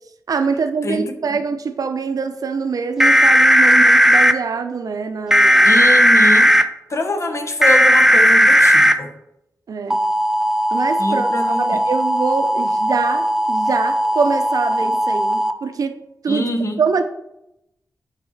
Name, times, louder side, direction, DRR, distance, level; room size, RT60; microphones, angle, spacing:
voice 1, 0.3-5.7 9.7-10.0 10.7-16.0 16.2-16.5 16.8-17.0, right 5 dB, 75° right, 0.6 m, -24 dB
voice 2, 0.8-1.4 5.6-6.5 6.9-9.1 11.0-11.8 16.3-16.8, left 1 dB, 50° left, 1.0 m, -24 dB
sound 1, 3.0-4.3 5.3-6.6 7.6-8.9 9.9-15.5, equal, 10° right, 0.5 m, -15 dB
5.7 x 4.1 x 5.5 m
cardioid pair, 60°, 6 cm